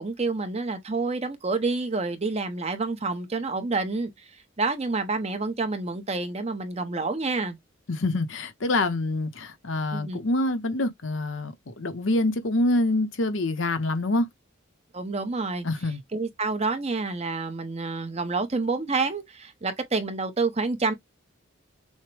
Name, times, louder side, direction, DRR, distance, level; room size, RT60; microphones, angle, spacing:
voice 1, 0.0-4.1 4.6-7.6 9.9-10.2 14.9-15.7 16.1-20.9, right 3 dB, 30° right, 0.8 m, -28 dB
voice 2, 7.9-14.3 15.6-16.0, left 2 dB, 70° left, 0.8 m, -26 dB
6.4 x 2.2 x 3.3 m
head